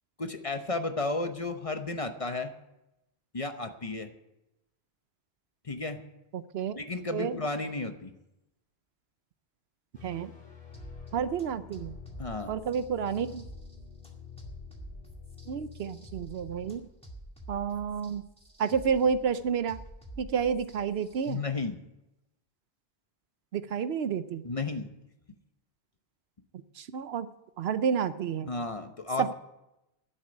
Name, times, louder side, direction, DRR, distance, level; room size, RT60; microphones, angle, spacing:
voice 1, 0.2-2.5 3.3-4.1 5.6-6.0 6.7-8.1 12.2-12.5 21.3-21.8 24.4-24.9 28.5-29.3, left 3 dB, 35° left, 7 dB, 0.9 m, -33 dB
voice 2, 6.3-6.8 7.1-7.3 10.0-10.3 11.1-12.0 12.5-13.4 15.5-16.8 17.5-18.2 18.6-19.8 20.2-21.4 23.5-24.4 26.8-27.3 27.6-28.5 29.2-29.3, right 7 dB, 75° right, 13 dB, 0.9 m, -30 dB
sound 1, 9.9-16.8, left 9 dB, 55° left, 3.5 m, -48 dB
sound 2, 10.7-21.3, right 1 dB, 5° left, 2.0 m, -48 dB
11.0 x 8.0 x 9.8 m, 0.92 s
omnidirectional pair, 1.1 m